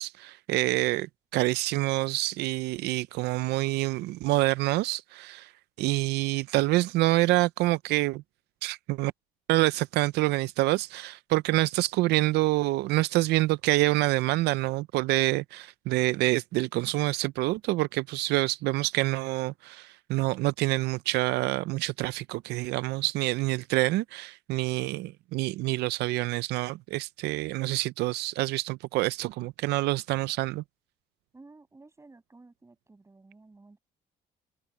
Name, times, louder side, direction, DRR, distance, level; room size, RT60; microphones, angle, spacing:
voice 1, 0.0-5.5 5.8-8.2 8.6-9.1 9.5-30.6, right 19 dB, 80° right, 0.5 m, -27 dB
voice 2, 31.3-33.8, right 3 dB, 15° right, 7.6 m, -53 dB
cardioid pair, 110°, 17 cm